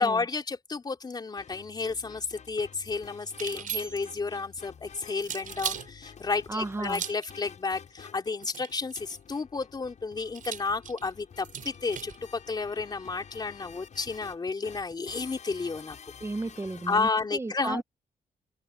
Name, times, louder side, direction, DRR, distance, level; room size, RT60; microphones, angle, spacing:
voice 1, 0.0-16.0 16.9-17.8, left 4 dB, 30° left, 3.4 m, -31 dB
sound 1, 1.4-17.1, left 7 dB, 55° left, 6.8 m, -50 dB
sound 2, 3.3-4.2 5.2-5.9 6.8-7.3 8.4-9.2 10.3-12.2, right 8 dB, 65° right, 5.8 m, -37 dB
voice 2, 6.5-7.0 16.2-17.8, right 2 dB, 15° right, 1.2 m, -34 dB
wide cardioid pair, 150°, 15 cm